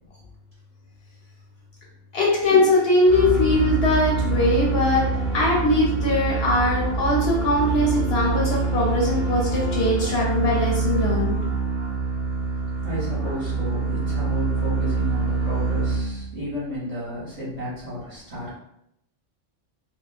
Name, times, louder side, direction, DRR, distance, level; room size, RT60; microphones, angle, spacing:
voice 1, 2.1-5.0 5.3-11.4, left 2 dB, 65° left, -3 dB, 0.8 m, -21 dB
sound 1, 3.1-16.5, right 4 dB, 65° right, 0.3 m, -25 dB
sound 2, 3.2-10.2, right 3 dB, 5° right, 0.5 m, -34 dB
voice 2, 12.8-18.5, equal, 35° right, -10 dB, 0.9 m, -32 dB
2.9 x 2.0 x 2.4 m, 0.79 s
omnidirectional pair, 1.3 m